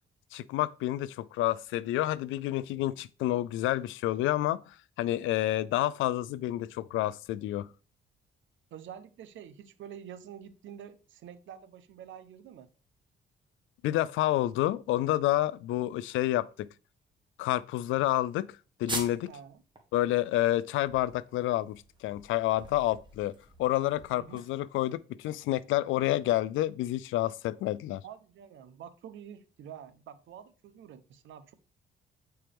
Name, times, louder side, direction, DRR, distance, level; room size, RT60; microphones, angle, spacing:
voice 1, 0.3-7.7 13.8-16.7 17.4-18.5 18.8-19.3 19.9-28.0, left 15 dB, 85° left, 0.4 m, -29 dB
voice 2, 8.7-12.7 19.3-19.6 24.1-24.4 28.0-31.5, right 9 dB, 75° right, 0.8 m, -47 dB
sound 1, 18.9-19.4 19.8-19.9 20.2-24.9, right 2 dB, 25° right, 1.6 m, -43 dB
8.6 x 4.5 x 3.4 m
cardioid pair, 90°, 20 cm